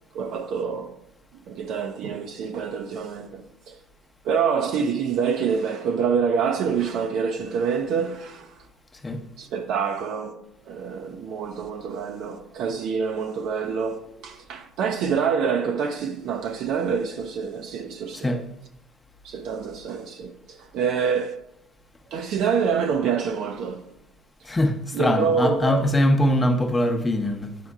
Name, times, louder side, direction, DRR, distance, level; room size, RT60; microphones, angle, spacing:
voice 1, 0.1-0.9 1.5-3.8 4.2-8.5 9.4-18.4 19.2-21.4 22.1-23.9 24.9-25.8, right 6 dB, 60° right, 0.5 m, -26 dB
voice 2, 8.9-9.2 18.1-18.5 24.4-27.6, left 1 dB, 15° left, 0.7 m, -22 dB
9.2 x 4.3 x 2.4 m
supercardioid pair, 90°, 0 cm